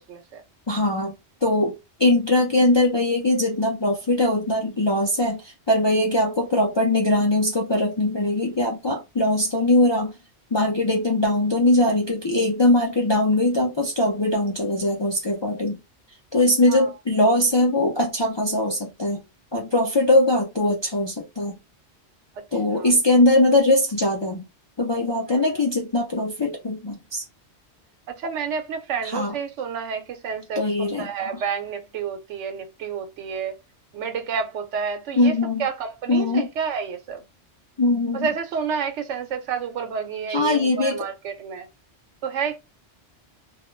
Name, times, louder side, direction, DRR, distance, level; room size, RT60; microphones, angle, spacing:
voice 1, 0.1-0.4 16.7-16.9 22.7-22.9 25.3-25.6 28.2-33.6 33.9-35.3 35.6-37.2 38.1-41.7 42.2-42.6, right 6 dB, 90° right, 1.0 m, -30 dB
voice 2, 0.7-1.1 1.4-1.7 2.0-10.2 10.5-15.8 16.3-19.2 19.5-21.6 22.5-24.5 24.8-27.2 29.1-29.3 30.6-31.3 35.2-35.7 36.1-36.5 37.8-38.3 40.3-41.0, left 1 dB, 40° left, 0.4 m, -21 dB
2.3 x 2.1 x 3.1 m
omnidirectional pair, 1.2 m